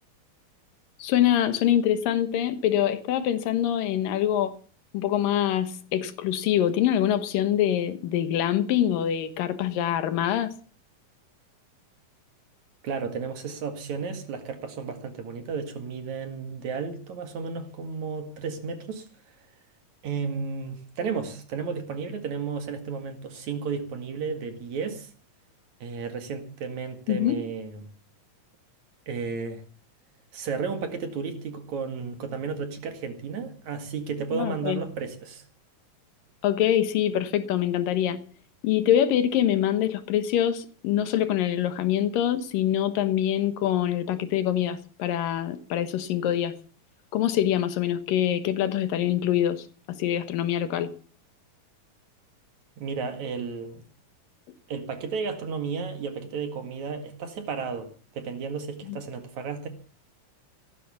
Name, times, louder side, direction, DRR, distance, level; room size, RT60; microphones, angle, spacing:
voice 1, 1.0-4.5 4.9-10.5 27.1-27.5 34.3-34.8 36.4-38.2 38.6-46.5 47.1-50.9 58.9-59.0, left 11 dB, 85° left, 3.0 m, -25 dB
voice 2, 12.8-19.0 20.0-25.1 25.8-27.8 29.1-29.6 30.3-35.4 52.8-53.8 54.7-59.7, right 5 dB, 60° right, 3.2 m, -33 dB
17.0 x 10.5 x 7.0 m
omnidirectional pair, 3.8 m